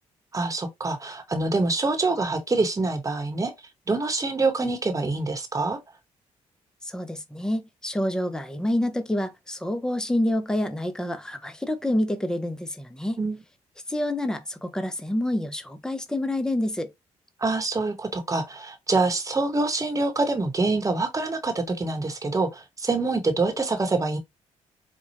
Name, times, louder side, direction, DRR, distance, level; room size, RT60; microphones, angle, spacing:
voice 1, 0.3-3.5 3.9-5.8 13.2-13.4 17.4-24.2, right 3 dB, 25° right, 1.2 m, -25 dB
voice 2, 6.8-13.2 13.9-16.9, left 1 dB, 5° left, 0.7 m, -27 dB
4.3 x 2.3 x 2.8 m
supercardioid pair, 70°, 13 cm